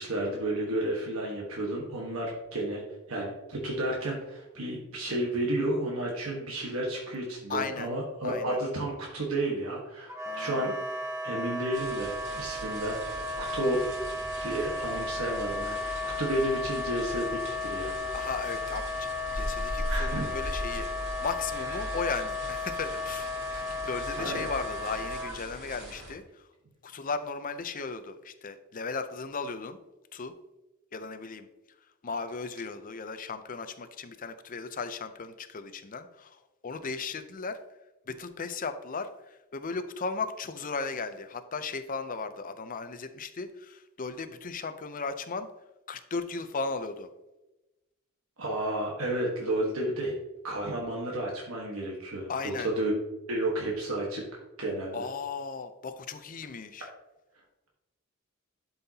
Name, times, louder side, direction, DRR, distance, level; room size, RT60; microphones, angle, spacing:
voice 1, 0.0-2.8 3.1-10.7 11.2-13.8 14.4-17.9 19.9-20.3 24.2-24.5 48.4-50.1 50.4-52.9 53.3-54.2 54.6-55.0, right 1 dB, 70° right, -2 dB, 1.4 m, -32 dB
voice 2, 7.5-7.9 8.2-8.6 10.2-10.8 18.1-19.1 19.3-20.9 21.2-26.5 26.8-29.8 30.1-30.3 30.9-31.5 32.0-37.6 38.1-45.5 45.9-47.1 52.3-52.7 54.9-56.9, left 4 dB, 40° left, 9 dB, 0.6 m, -36 dB
Wind instrument woodwind instrument, 10.1-25.4, left 2 dB, 15° right, 1.1 m, -35 dB
sound 1, 11.7-26.1, equal, 55° right, 3.0 m, -40 dB
11.5 x 5.6 x 2.9 m, 1.0 s
head